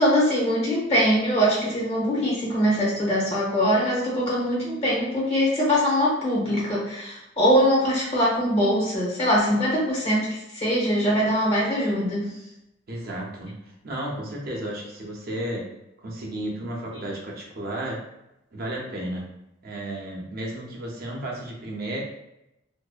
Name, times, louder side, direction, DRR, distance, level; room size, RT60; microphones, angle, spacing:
voice 1, 0.0-12.4, equal, 30° left, -5 dB, 0.7 m, -22 dB
voice 2, 12.9-15.6 16.0-18.0 18.5-19.2 19.6-22.0, right 1 dB, 50° right, -2 dB, 0.6 m, -33 dB
2.5 x 2.1 x 2.3 m, 0.88 s
head